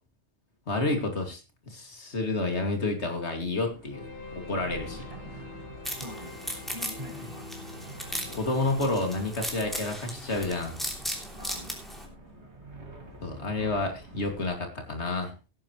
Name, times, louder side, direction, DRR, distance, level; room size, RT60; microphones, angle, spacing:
voice 1, 0.7-1.4 1.7-4.1 4.3-5.0 8.3-10.8 13.2-15.3, left 2 dB, 85° left, 4 dB, 2.8 m, -29 dB
sound 1, 3.6-14.5, right 1 dB, 90° right, 3.0 m, -48 dB
sound 2, 3.9-10.2, left 2 dB, 60° left, 3.7 m, -45 dB
voice 2, 4.9-5.3 6.0-7.5 11.3-11.8 13.6-13.9, equal, 35° right, -3 dB, 5.0 m, -45 dB
sound 3, 5.8-12.0, equal, ahead, 3.1 m, -37 dB
17.5 x 10.5 x 3.1 m, 0.29 s
omnidirectional pair, 1.1 m